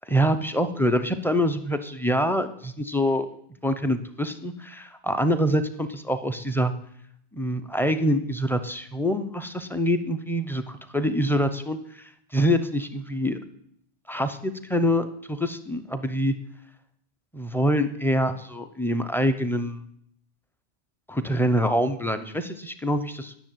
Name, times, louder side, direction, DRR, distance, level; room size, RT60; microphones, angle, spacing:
voice 1, 0.0-3.3 3.6-6.7 7.3-13.4 14.1-16.3 17.3-19.8 21.1-23.3, equal, 5° left, 9 dB, 0.5 m, -25 dB
10.0 x 6.7 x 9.2 m, 0.69 s
omnidirectional pair, 1.1 m